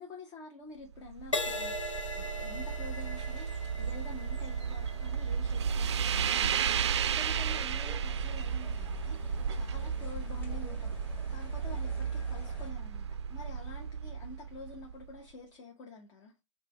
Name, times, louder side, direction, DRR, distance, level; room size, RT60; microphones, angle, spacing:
voice 1, 0.0-16.3, left 2 dB, 25° left, 0.7 m, -48 dB
sound 1, 1.0-15.1, right 7 dB, 65° right, 0.4 m, -33 dB
Crash cymbal, 1.3-9.0 9.6-9.9, left 1 dB, 85° left, 0.6 m, -41 dB
sound 2, 7.3-12.7, left 3 dB, 10° left, 1.5 m, -45 dB
5.0 x 2.2 x 3.0 m
figure-of-eight pair, 125°, 16 cm